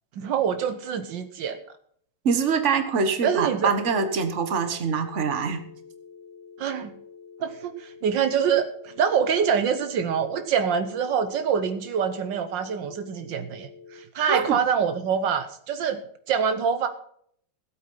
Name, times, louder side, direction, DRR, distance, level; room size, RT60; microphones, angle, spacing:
voice 1, 0.2-1.6 3.2-3.7 6.6-6.9 7.4-16.0 16.3-16.9, right 7 dB, 75° right, 9 dB, 1.6 m, -25 dB
voice 2, 2.2-5.6 14.3-14.6, right 5 dB, 40° right, 8 dB, 1.6 m, -24 dB
sound 1, 4.0-14.0, left 5 dB, ahead, 4.7 m, -47 dB
16.0 x 8.6 x 5.6 m, 0.63 s
omnidirectional pair, 2.0 m